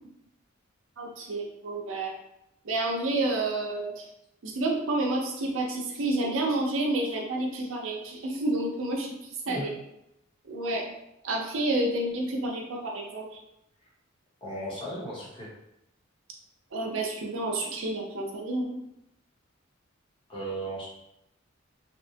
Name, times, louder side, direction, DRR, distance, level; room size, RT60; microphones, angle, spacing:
voice 1, 1.0-2.1 2.6-4.0 4.4-9.1 9.5-9.7 10.5-10.8 11.2-13.3 16.7-18.8, right 2 dB, 70° right, -1 dB, 0.6 m, -29 dB
voice 2, 9.4-9.7 13.8-13.9 14.4-15.5 20.3-20.9, right 1 dB, 25° left, -5 dB, 0.8 m, -36 dB
2.8 x 2.1 x 2.7 m, 0.83 s
head